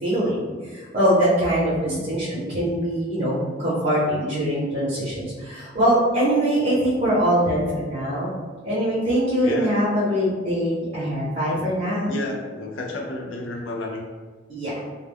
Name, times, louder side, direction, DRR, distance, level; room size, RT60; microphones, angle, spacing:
voice 1, 0.0-8.3 8.6-12.2 14.5-14.7, equal, 40° right, -9 dB, 0.7 m, -23 dB
voice 2, 9.4-9.7 11.6-11.7 12.1-14.1, left 1 dB, 85° left, 1 dB, 0.5 m, -31 dB
2.2 x 2.1 x 3.3 m, 1.4 s
head